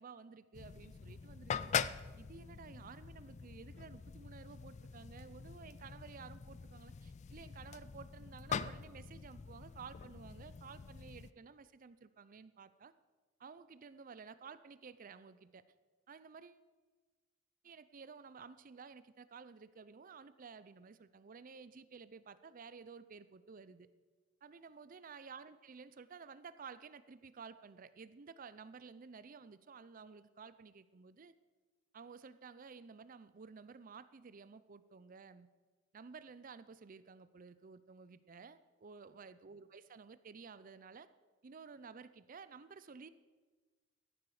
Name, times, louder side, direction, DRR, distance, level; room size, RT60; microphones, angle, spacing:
voice 1, 0.0-1.6 2.2-12.9 13.4-15.6 16.1-16.6 17.6-23.9 24.4-31.3 31.9-35.5 35.9-41.1 41.4-43.1, right 5 dB, 45° right, 14 dB, 0.5 m, -53 dB
sound 1, 0.5-11.3, left 7 dB, 35° left, 0.3 m, -43 dB
14.5 x 11.0 x 4.9 m, 1.3 s
head